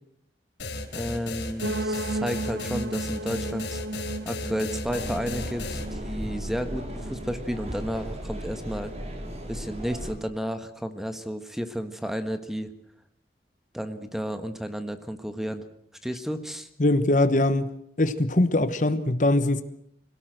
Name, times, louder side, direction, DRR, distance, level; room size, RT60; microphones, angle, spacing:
sound 1, 0.6-5.9, left 2 dB, 85° left, 3.6 m, -34 dB
voice 1, 0.9-3.8 4.2-8.9 9.5-12.7 13.7-15.6 16.0-16.7, equal, ahead, 9 dB, 1.4 m, -32 dB
sound 2, 1.6-7.5, right 1 dB, 80° right, 0.8 m, -35 dB
sound 3, 4.8-10.1, equal, 40° right, 3.8 m, -36 dB
voice 2, 16.8-17.7 18.0-19.6, left 2 dB, 45° left, 12 dB, 1.2 m, -22 dB
25.5 x 17.5 x 7.8 m, 0.73 s
head